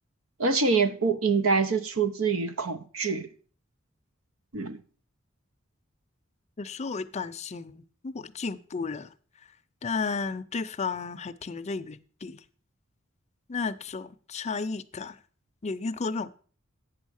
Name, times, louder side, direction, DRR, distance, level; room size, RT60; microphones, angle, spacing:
voice 1, 0.4-3.3 4.5-4.8, right 4 dB, 90° right, 0.8 m, -25 dB
voice 2, 6.6-9.1 9.8-12.4 13.5-15.2 15.6-16.3, left 4 dB, 35° left, 0.5 m, -33 dB
8.8 x 6.3 x 6.3 m
head